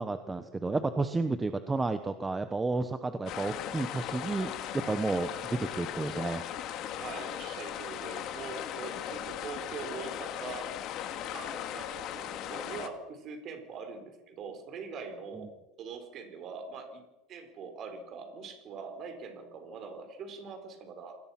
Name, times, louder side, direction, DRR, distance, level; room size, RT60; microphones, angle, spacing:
voice 1, 0.0-6.4, right 3 dB, 10° right, 9 dB, 1.0 m, -31 dB
sound 1, 3.3-12.9, left 10 dB, 40° left, 2.1 m, -38 dB
voice 2, 7.0-10.7 11.3-15.5 15.8-17.0 17.3-21.2, right 5 dB, 35° right, 6 dB, 4.8 m, -43 dB
27.5 x 20.0 x 6.0 m, 1.0 s
supercardioid pair, 160°, 0 cm